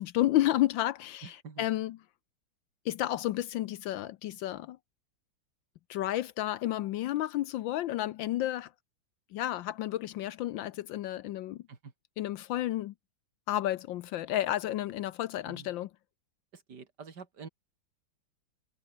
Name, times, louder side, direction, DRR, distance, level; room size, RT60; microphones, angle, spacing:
voice 1, 0.0-2.0 2.8-4.8 5.9-8.7 9.3-11.6 12.2-12.9 13.5-15.9, left 14 dB, 75° left, 1.3 m, -31 dB
voice 2, 1.2-1.7 11.7-11.9 15.4-15.7 16.5-17.5, right 5 dB, 55° right, 3.3 m, -47 dB
omnidirectional pair, 2.3 m